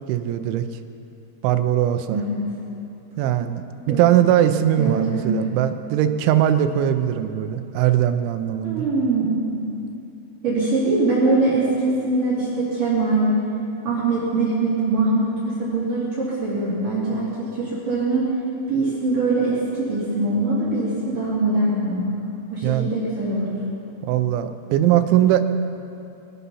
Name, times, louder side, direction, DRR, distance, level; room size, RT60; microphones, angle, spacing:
voice 1, 0.1-0.6 1.4-2.2 3.2-8.9 22.6-22.9 24.0-25.5, right 11 dB, 80° right, 9 dB, 3.1 m, -20 dB
voice 2, 4.8-5.4 8.6-9.6 10.4-13.3 13.8-18.3 18.7-23.5, right 2 dB, 50° right, -10 dB, 4.3 m, -22 dB
23.0 x 10.0 x 5.6 m, 2.7 s
omnidirectional pair, 5.5 m